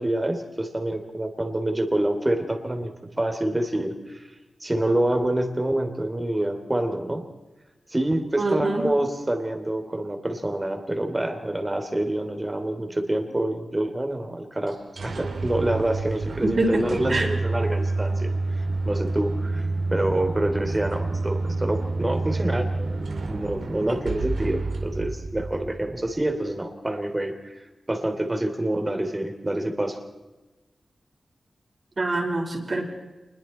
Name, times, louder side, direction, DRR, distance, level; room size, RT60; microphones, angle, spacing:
voice 1, 0.0-4.3 4.6-7.2 7.9-19.6 19.9-30.0, right 1 dB, 25° right, 5 dB, 3.3 m, -27 dB
voice 2, 8.4-8.9 12.8-12.9 16.4-16.8 17.1-17.3 32.0-32.9, right 2 dB, 50° right, 2 dB, 5.0 m, -24 dB
sound 1, 14.7-26.3, right 3 dB, 75° right, 2.2 m, -28 dB
27.5 x 21.5 x 4.5 m, 1.1 s
cardioid pair, 65°, 0 cm